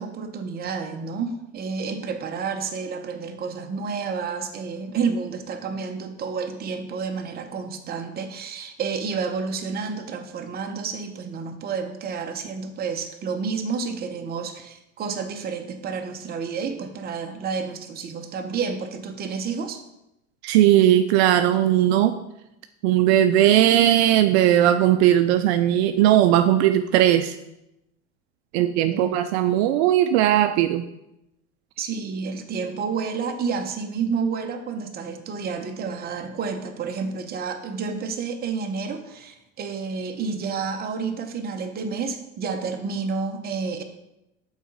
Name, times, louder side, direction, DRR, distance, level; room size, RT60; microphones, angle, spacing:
voice 1, 0.0-19.8 28.6-29.2 31.8-43.8, right 5 dB, 30° right, 5 dB, 0.8 m, -30 dB
voice 2, 20.4-22.2 22.8-27.4 28.5-30.8, right 12 dB, 70° right, 9 dB, 0.5 m, -18 dB
6.1 x 4.0 x 5.4 m, 0.88 s
supercardioid pair, 110°, 33 cm